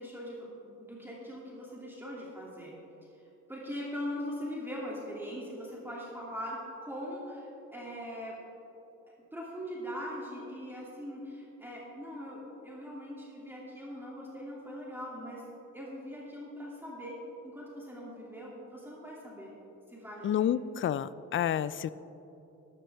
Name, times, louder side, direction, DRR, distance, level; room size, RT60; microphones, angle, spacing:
voice 1, 0.0-2.7 3.5-8.4 9.3-15.4 15.7-17.2 17.4-19.5 19.9-20.5, equal, 5° right, -5 dB, 2.5 m, -41 dB
voice 2, 20.2-21.9, left 10 dB, 45° left, 17 dB, 0.4 m, -29 dB
12.5 x 12.0 x 3.5 m, 3.0 s
cardioid pair, 90°, 30 cm